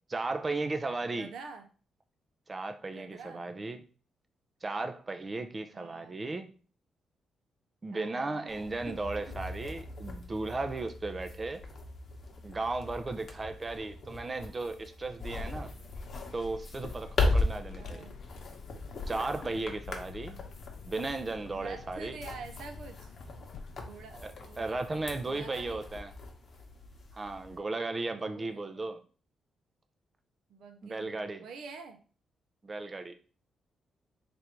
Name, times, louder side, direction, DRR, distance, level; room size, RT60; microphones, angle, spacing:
voice 1, 0.1-1.3 2.5-3.8 4.6-6.5 7.8-11.6 12.4-15.7 16.3-18.0 19.1-20.4 20.8-22.2 24.2-26.1 27.1-29.0 30.8-31.4 32.6-33.1, right 3 dB, 25° right, 7 dB, 0.4 m, -35 dB
voice 2, 1.0-1.7 2.9-3.5 5.7-6.2 7.9-9.4 15.4-15.9 17.8-18.2 21.5-23.2 23.8-25.9 28.1-28.9 30.5-32.0, right 4 dB, 80° right, 6 dB, 0.6 m, -48 dB
sound 1, 8.5-27.6, left 2 dB, 50° left, 0.9 m, -38 dB
Vehicle, 15.3-25.6, left 6 dB, 75° left, 0.4 m, -50 dB
3.4 x 2.5 x 4.4 m, 0.38 s
cardioid pair, 120°, 0 cm